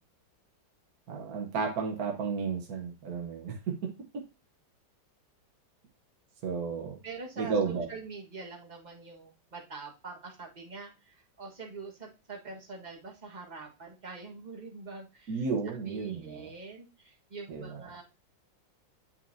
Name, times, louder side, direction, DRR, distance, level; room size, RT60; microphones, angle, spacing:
voice 1, 1.1-3.9 6.4-7.0 7.4-7.9 15.3-16.5 17.5-17.8, right 5 dB, 55° right, 1 dB, 1.5 m, -33 dB
voice 2, 7.0-15.4 15.8-18.0, right 4 dB, 25° right, 0 dB, 1.4 m, -44 dB
8.6 x 5.8 x 2.7 m, 0.30 s
omnidirectional pair, 2.0 m